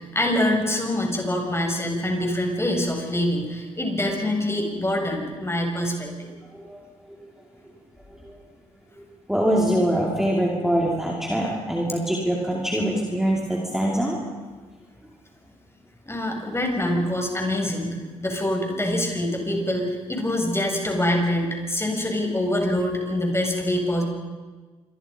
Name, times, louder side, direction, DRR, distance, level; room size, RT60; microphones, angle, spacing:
voice 1, 0.0-6.3 16.1-24.0, left 1 dB, 15° left, 1 dB, 7.6 m, -25 dB
voice 2, 6.5-6.8 7.1-7.2 8.1-8.4 9.0-14.2, right 1 dB, 5° right, -3 dB, 5.3 m, -24 dB
27.0 x 23.5 x 5.5 m, 1.3 s
hypercardioid pair, 45°, 16 cm